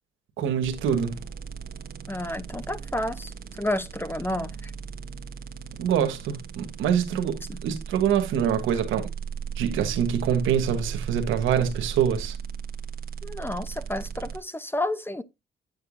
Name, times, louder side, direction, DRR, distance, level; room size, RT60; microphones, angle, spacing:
voice 1, 0.4-1.2 5.8-9.1 9.6-12.4, right 8 dB, 90° right, 1.4 m, -25 dB
sound 1, 0.6-14.4, right 7 dB, 50° right, 1.3 m, -37 dB
voice 2, 2.1-3.3 3.6-4.7 7.5-7.6 13.2-15.2, left 1 dB, 10° left, 0.7 m, -30 dB
9.1 x 6.8 x 2.6 m
cardioid pair, 90°, 20 cm